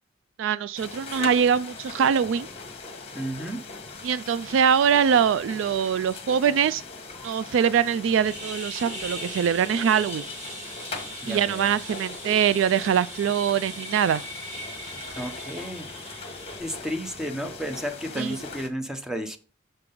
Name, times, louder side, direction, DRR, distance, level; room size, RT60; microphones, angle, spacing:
voice 1, 0.4-2.5 4.0-6.8 7.2-10.3 11.3-14.2 18.2-18.4, right 7 dB, 65° right, 0.3 m, -23 dB
sound 1, 0.7-18.7, left 4 dB, 30° left, 1.2 m, -40 dB
voice 2, 3.1-3.6 11.2-11.7 15.2-15.9 16.6-19.4, equal, 5° right, 0.8 m, -32 dB
sound 2, 8.2-16.6, right 1 dB, 40° right, 1.9 m, -40 dB
6.5 x 6.0 x 3.8 m
head